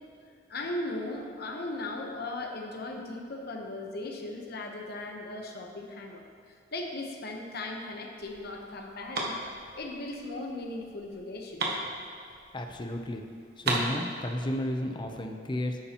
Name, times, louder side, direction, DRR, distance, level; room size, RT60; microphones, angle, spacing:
voice 1, 0.5-9.4 9.8-11.8, left 2 dB, 55° left, 2 dB, 1.0 m, -37 dB
sound 1, 8.2-12.7 13.0-13.1 13.4-14.6, right 2 dB, 60° right, 1.2 m, -35 dB
voice 2, 12.5-13.2 13.6-15.8, left 1 dB, 25° left, 4 dB, 0.7 m, -32 dB
11.0 x 8.5 x 3.0 m, 2.4 s
head